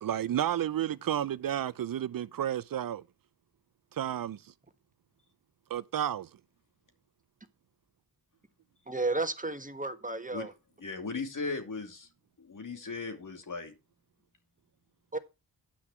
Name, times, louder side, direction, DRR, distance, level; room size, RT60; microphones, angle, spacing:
voice 1, 0.0-3.0 3.9-4.4 5.7-6.3, right 10 dB, 60° right, 0.6 m, -31 dB
voice 2, 8.9-10.5 15.1-15.2, right 2 dB, 20° right, 1.5 m, -32 dB
voice 3, 10.8-12.1 12.4-13.7, left 4 dB, 55° left, 2.7 m, -37 dB
10.0 x 6.0 x 5.7 m
cardioid pair, 45°, 38 cm